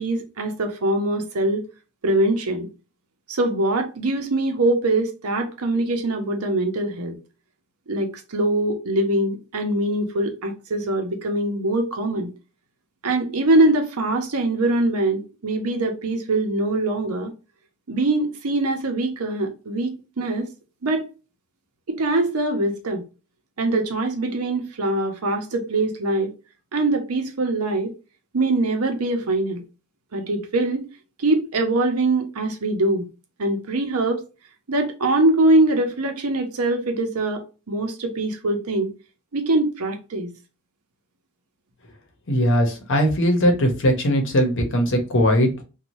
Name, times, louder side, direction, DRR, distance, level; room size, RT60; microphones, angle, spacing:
voice 1, 0.0-1.6 2.0-2.7 3.3-7.2 7.9-12.3 13.0-17.3 17.9-20.5 20.8-21.0 21.9-23.0 23.6-26.3 26.7-27.9 28.3-29.6 30.1-30.9 31.2-33.1 33.4-34.2 34.7-38.9 39.3-40.3, right 2 dB, 75° right, 0.7 m, -23 dB
voice 2, 42.3-45.5, equal, 60° left, 0.9 m, -19 dB
2.7 x 2.3 x 3.0 m
head